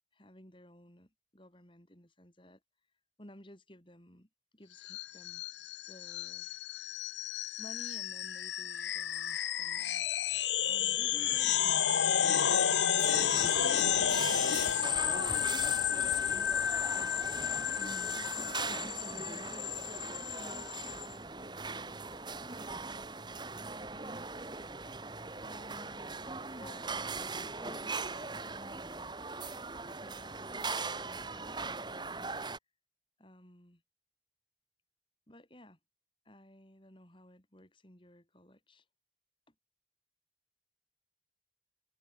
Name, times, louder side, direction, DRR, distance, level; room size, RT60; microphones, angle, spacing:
voice 1, 0.1-2.6 3.2-5.5 5.9-6.5 7.6-10.1 10.7-12.9 15.5-15.9 16.9-18.6 19.1-20.0 20.4-22.3 23.0-24.1 25.4-26.1 26.6-26.8 27.4-32.3 33.2-33.8 35.3-35.8 36.3-38.9 39.5-39.6, equal, 30° left, 5.6 m, -56 dB
Tone Shift, 4.8-21.1, left 9 dB, 85° left, 0.9 m, -31 dB
sound 1, 13.0-32.6, right 3 dB, 25° right, 2.5 m, -40 dB
head